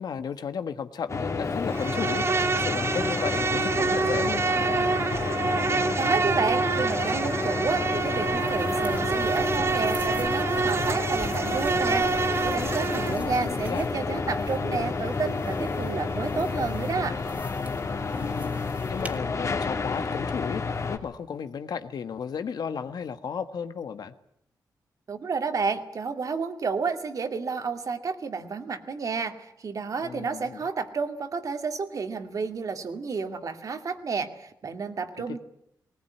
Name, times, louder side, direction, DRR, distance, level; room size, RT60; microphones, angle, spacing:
voice 1, 0.0-2.2 2.5-4.6 13.0-13.9 18.1-18.6 18.9-24.1 30.0-30.6 35.3-35.4, left 6 dB, 70° left, 10 dB, 1.5 m, -34 dB
sound 1, 1.1-21.0, left 4 dB, 45° left, 2.7 m, -30 dB
Insect, 1.7-13.2, right 4 dB, 40° right, 0.9 m, -27 dB
voice 2, 6.0-17.2 25.1-35.4, right 5 dB, 55° right, 6 dB, 2.4 m, -30 dB
sound 2, 7.7-19.2, right 2 dB, 20° right, 2.7 m, -46 dB
19.5 x 19.5 x 9.6 m, 0.78 s
cardioid pair, 95°, 7 cm